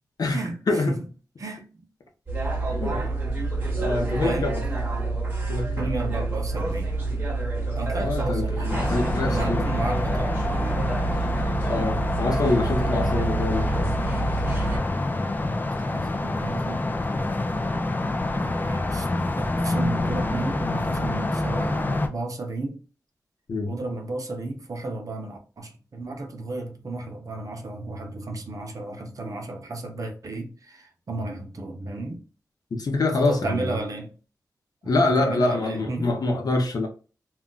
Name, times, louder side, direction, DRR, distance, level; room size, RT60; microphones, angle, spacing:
voice 1, 0.2-0.9 2.8-3.0 3.8-4.6 5.5-5.9 8.0-9.7 11.7-13.9 23.5-23.7 32.7-33.8 34.8-36.9, left 2 dB, 65° left, 0.7 m, -25 dB
voice 2, 1.4-1.9 4.2-4.5 5.8-6.9 7.7-8.7 9.2-10.3 15.6-17.5 18.3-19.1 19.6-22.8 23.7-32.2 33.1-34.1 35.0-36.2, right 2 dB, 55° right, 0.7 m, -33 dB
sound 1, 2.3-14.8, right 3 dB, 30° right, 1.0 m, -27 dB
sound 2, 8.7-22.1, left 2 dB, 25° left, 0.4 m, -27 dB
2.3 x 2.2 x 3.8 m
wide cardioid pair, 80°, 7 cm